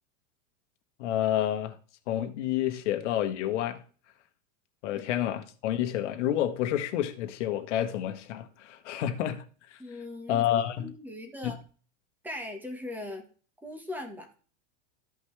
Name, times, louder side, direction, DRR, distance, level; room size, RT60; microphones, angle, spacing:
voice 1, 1.0-1.8 2.1-3.8 4.8-9.4 10.3-10.9 11.4-11.6, left 11 dB, 70° left, 1.3 m, -29 dB
voice 2, 9.8-10.4 10.8-11.6 12.2-13.3 13.6-14.3, left 1 dB, 5° right, 1.3 m, -39 dB
13.5 x 5.3 x 3.3 m
supercardioid pair, 155°, 37 cm